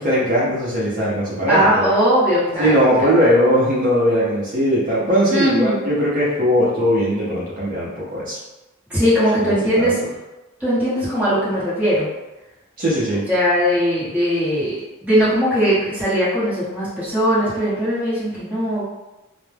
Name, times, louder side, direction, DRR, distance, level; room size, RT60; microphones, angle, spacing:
voice 1, 0.0-1.9 2.6-8.4 9.4-9.9 12.8-13.2, equal, 40° right, -8 dB, 0.6 m, -19 dB
voice 2, 1.5-2.7 3.0-3.1 5.3-5.8 8.9-10.0 10.6-12.1 13.3-14.7 15.0-18.9, equal, 5° right, -11 dB, 0.9 m, -19 dB
2.1 x 2.0 x 3.2 m, 1.0 s
head